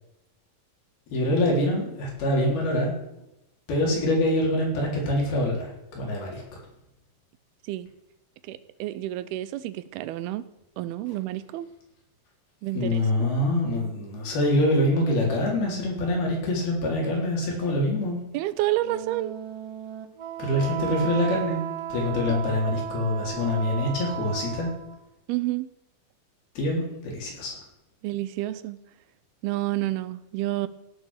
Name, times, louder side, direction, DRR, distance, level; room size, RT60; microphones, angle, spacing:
voice 1, 1.1-2.9 3.7-6.6 12.8-18.2 20.4-21.6 21.9-24.7 26.6-27.6, left 1 dB, 80° left, -2 dB, 5.7 m, -25 dB
voice 2, 8.4-10.5 10.8-11.7 12.6-13.0 18.3-19.3 22.3-22.4 25.3-25.7 28.0-28.8 29.4-30.7, right 15 dB, 90° right, 15 dB, 2.7 m, -29 dB
Wind instrument woodwind instrument, 18.8-25.0, right 11 dB, 65° right, 1.6 m, -35 dB
16.5 x 7.5 x 6.6 m, 0.87 s
omnidirectional pair, 4.4 m